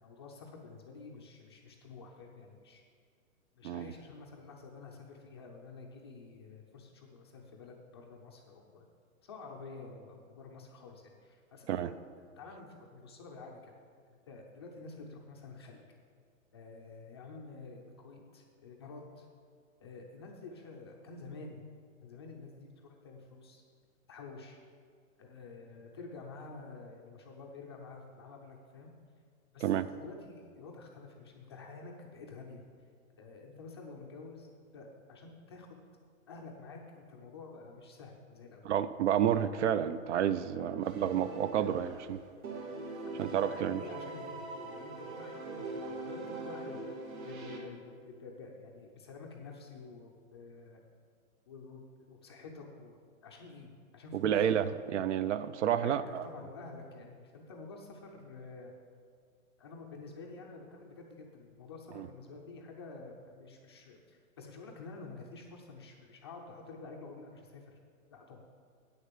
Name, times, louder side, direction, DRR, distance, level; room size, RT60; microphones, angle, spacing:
voice 1, 0.0-2.8 3.5-8.9 9.2-11.9 12.3-13.7 14.1-16.0 16.5-19.3 19.8-21.6 22.0-23.6 24.1-24.6 25.2-28.9 29.5-32.6 33.2-35.8 36.3-38.7 40.6-41.0 41.8-41.9 43.0-46.8 47.2-50.8 51.5-51.8 52.1-54.5 55.7-58.7 59.6-67.8 68.1-68.4, left 3 dB, 20° left, 0 dB, 0.4 m, -49 dB
voice 2, 38.7-42.2 43.2-43.8 54.1-56.2 62.0-62.1, right 9 dB, 55° right, 14 dB, 0.5 m, -30 dB
sound 1, 40.8-42.1 42.4-47.6, right 3 dB, 75° right, 2.1 m, -42 dB
8.7 x 6.7 x 7.4 m, 2.1 s
hypercardioid pair, 160°, 42 cm